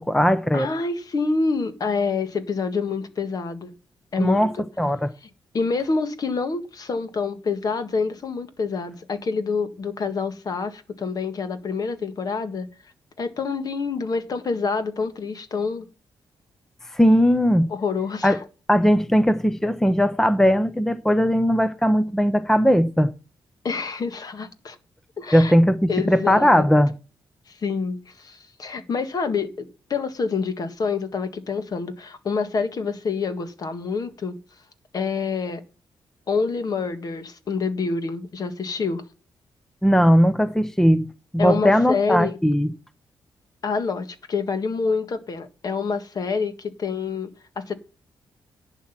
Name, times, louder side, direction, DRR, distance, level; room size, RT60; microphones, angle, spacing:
voice 1, 0.0-0.7 4.2-4.5 4.8-5.1 16.9-17.7 18.2-18.4 18.7-23.1 25.3-26.9 39.8-41.1 41.3-42.7, equal, 5° left, 0.7 m, -18 dB
voice 2, 0.5-3.7 4.1-4.5 5.5-12.7 13.2-15.9 17.7-18.4 23.6-24.8 25.2-25.6 25.9-26.7 27.5-34.4 34.9-35.6 36.3-39.0 41.4-42.4 43.6-47.7, left 4 dB, 45° left, 1.7 m, -27 dB
11.0 x 7.4 x 5.9 m
cardioid pair, 125°, 9 cm